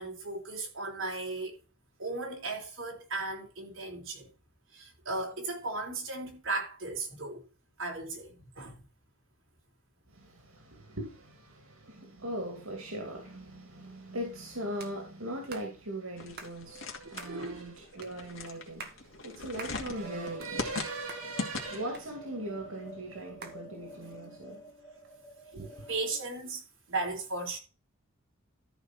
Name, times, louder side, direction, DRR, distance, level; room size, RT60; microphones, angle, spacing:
voice 1, 0.0-1.6 2.0-4.3 4.7-7.4 7.8-8.8 17.0-17.6 25.9-26.6 26.9-27.6, right 3 dB, 65° right, 4.1 m, -36 dB
voice 2, 10.1-24.6 25.5-25.7, right 1 dB, 90° right, 2.7 m, -40 dB
sound 1, 14.8-15.0 15.5-15.7 16.4-16.5 17.2-17.4 18.0-18.1 18.6-19.0 19.6-19.8 20.2-20.8 21.1-21.2 21.9-22.5 23.4-23.6, right 4 dB, 50° right, 1.9 m, -45 dB
sound 2, 16.2-22.0, left 3 dB, 65° left, 2.4 m, -40 dB
sound 3, 20.0-26.2, equal, 15° left, 2.2 m, -50 dB
13.0 x 5.6 x 4.3 m
head